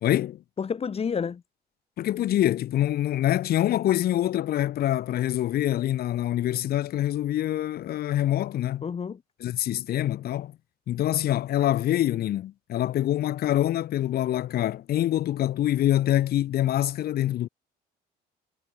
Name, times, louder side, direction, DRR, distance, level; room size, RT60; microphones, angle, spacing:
voice 1, 0.0-0.4 2.0-8.9 9.4-10.5 10.9-17.5, left 13 dB, 65° left, 3.6 m, -25 dB
voice 2, 0.6-1.4 8.8-9.2, left 6 dB, 35° left, 6.4 m, -29 dB
cardioid pair, 110°, 17 cm